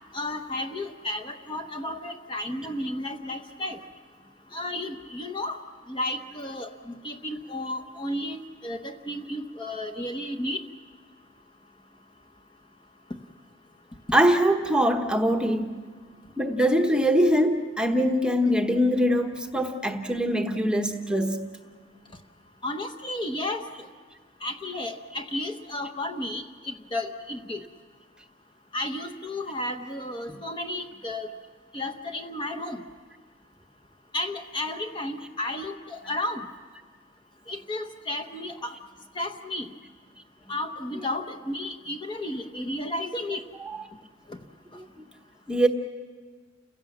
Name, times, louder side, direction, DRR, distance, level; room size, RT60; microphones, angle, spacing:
voice 1, 0.1-3.8 4.5-5.6 5.9-10.6 22.6-23.6 24.4-27.6 28.7-31.3 31.7-32.8 34.1-36.5 37.5-38.7 39.1-39.7 40.5-43.4 44.3-44.4, left 1 dB, 25° left, 5 dB, 0.9 m, -33 dB
voice 2, 14.1-15.7 16.4-21.4 45.5-45.7, equal, 5° right, 4 dB, 1.0 m, -23 dB
30.0 x 16.5 x 7.3 m, 1.5 s
head